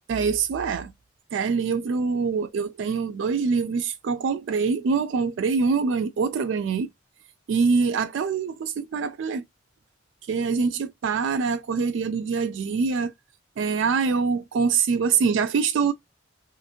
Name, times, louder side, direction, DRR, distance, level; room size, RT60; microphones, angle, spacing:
voice 1, 0.1-0.9 1.3-6.9 7.5-9.4 10.3-13.1 13.6-15.9, right 5 dB, 75° right, 0.3 m, -24 dB
2.9 x 2.5 x 2.3 m
head